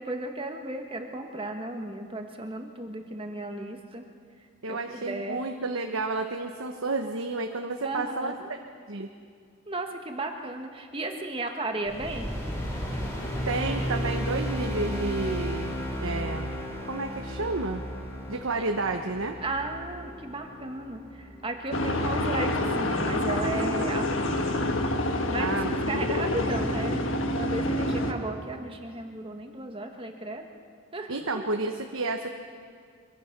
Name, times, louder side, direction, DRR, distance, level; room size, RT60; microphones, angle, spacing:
voice 1, 0.0-4.1 4.7-5.4 7.8-8.5 9.7-12.4 18.5-18.6 19.4-24.6 25.3-27.0 27.3-30.5 30.9-31.4, right 2 dB, 25° right, 4 dB, 1.5 m, -35 dB
voice 2, 4.6-8.6 8.9-9.1 13.5-16.5 16.8-17.8 18.3-19.4 25.4-25.8 31.1-32.3, right 3 dB, 65° right, 4 dB, 1.1 m, -31 dB
sound 1, 11.9-22.3, equal, 15° left, 3.7 m, -34 dB
sound 2, 21.7-28.1, left 1 dB, 60° left, 1.6 m, -27 dB
24.0 x 23.0 x 6.0 m, 2.1 s
head